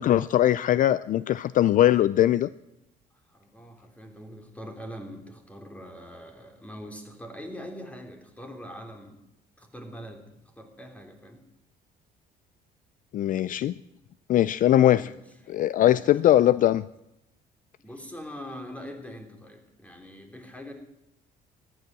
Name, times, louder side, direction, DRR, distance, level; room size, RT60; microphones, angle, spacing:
voice 1, 0.0-2.5 13.1-13.8 14.3-15.1 15.5-16.8, left 12 dB, 50° left, 17 dB, 0.4 m, -21 dB
voice 2, 3.3-9.2 9.6-11.4 14.9-15.6 15.9-16.3 17.8-20.7, equal, 10° left, 4 dB, 3.3 m, -43 dB
14.5 x 11.0 x 7.5 m, 0.88 s
cardioid pair, 110°, 17 cm